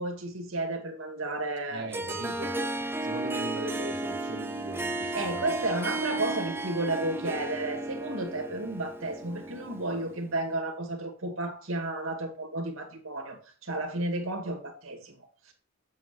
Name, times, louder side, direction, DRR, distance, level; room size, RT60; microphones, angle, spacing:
voice 1, 0.0-2.5 5.1-15.5, right 2 dB, 85° right, 4 dB, 2.3 m, -33 dB
voice 2, 1.7-2.6 3.0-5.6, right 1 dB, 60° right, -1 dB, 1.3 m, -40 dB
Harp, 1.9-10.4, right 2 dB, 10° right, 0.7 m, -34 dB
8.6 x 7.6 x 3.2 m, 0.36 s
head